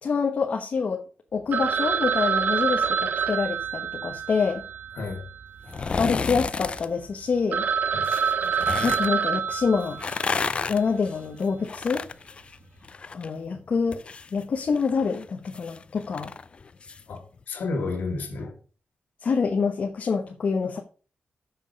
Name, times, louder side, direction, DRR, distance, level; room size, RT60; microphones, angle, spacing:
voice 1, 0.0-1.0 1.3-4.6 6.0-7.6 8.8-10.0 10.7-12.0 13.1-14.0 14.3-16.3 19.2-20.8, left 5 dB, 55° left, 1.1 m, -26 dB
Telephone, 1.5-5.9 6.1-6.2 6.8-6.9 7.2-7.3 7.5-10.5, right 7 dB, 65° right, 0.6 m, -27 dB
voice 2, 4.9-5.3 7.9-8.0 8.4-8.5 17.1-18.6, left 3 dB, 80° left, 2.3 m, -31 dB
sound 1, 5.7-6.9 8.0-9.1 9.8-13.3 13.6-17.0 17.4-17.5, left 4 dB, 40° left, 0.4 m, -32 dB
6.9 x 6.3 x 6.5 m
wide cardioid pair, 130°, 3 cm